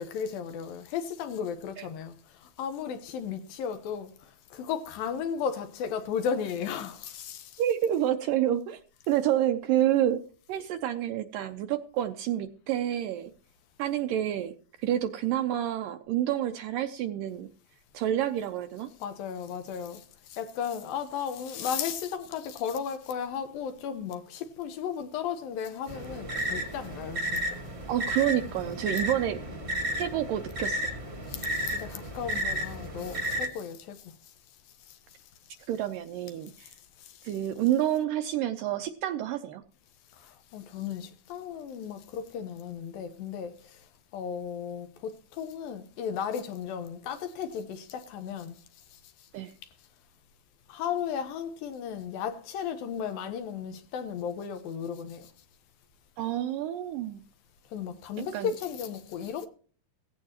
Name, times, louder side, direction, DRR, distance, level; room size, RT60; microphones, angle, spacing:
voice 1, 0.0-2.2 2.6-4.1 4.5-7.5 19.0-20.0 20.3-27.6 31.3-34.0 40.5-43.5 44.1-48.5 50.7-55.3 57.7-59.5, left 7 dB, 70° left, 2.7 m, -35 dB
voice 2, 7.6-8.8 9.1-10.2 10.5-13.3 13.8-14.5 14.8-17.5 17.9-18.9 27.9-29.4 30.0-30.9 35.7-36.7 37.2-39.6 49.3-49.5 56.2-57.2 58.3-58.5, right 11 dB, 80° right, 2.0 m, -28 dB
sound 1, 25.9-33.5, equal, 30° right, 1.1 m, -33 dB
17.0 x 15.5 x 2.9 m
omnidirectional pair, 4.5 m